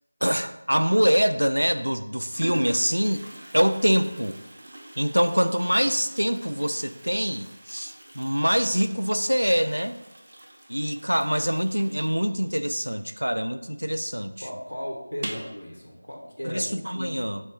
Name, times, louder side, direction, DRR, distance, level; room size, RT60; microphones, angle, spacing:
voice 1, 0.2-3.2 3.5-4.4 5.0-10.0 10.7-14.3 16.4-17.4, equal, 85° right, 10 dB, 0.3 m, -24 dB
Toilet flush, 1.3-1.4 2.0-2.1 2.4-13.7 13.9-14.0 14.3-14.4 15.1-15.6, right 1 dB, 40° right, 0.6 m, -42 dB
voice 2, 14.4-17.1, equal, 75° left, -1 dB, 1.1 m, -36 dB
4.2 x 3.1 x 3.3 m, 0.99 s
figure-of-eight pair, 170°, 0 cm